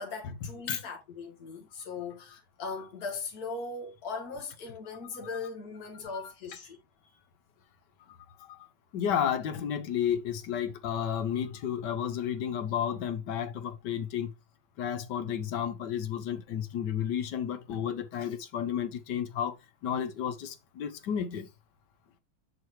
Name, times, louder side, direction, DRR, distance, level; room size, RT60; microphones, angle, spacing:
voice 1, 0.0-6.8, left 4 dB, 50° left, 2.1 m, -39 dB
voice 2, 8.1-8.6 8.9-14.3 14.8-19.6 19.8-21.5, left 9 dB, 65° left, 1.3 m, -32 dB
6.6 x 6.3 x 3.1 m
omnidirectional pair, 2.2 m